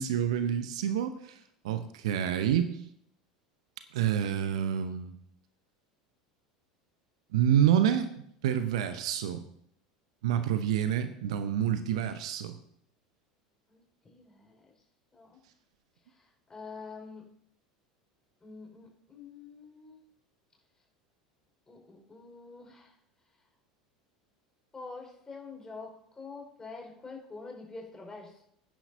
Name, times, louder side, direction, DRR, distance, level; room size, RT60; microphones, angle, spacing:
voice 1, 0.0-1.4 1.6-2.8 3.9-5.1 7.3-8.1 8.4-9.4 10.2-12.6, right 9 dB, 60° right, 10 dB, 0.8 m, -28 dB
voice 2, 13.7-14.6 15.1-15.4 16.1-17.3 18.4-20.0 21.7-22.9 24.7-28.4, left 4 dB, 15° left, 0 dB, 4.9 m, -46 dB
19.0 x 10.0 x 2.7 m, 0.70 s
figure-of-eight pair, 75°, 4 cm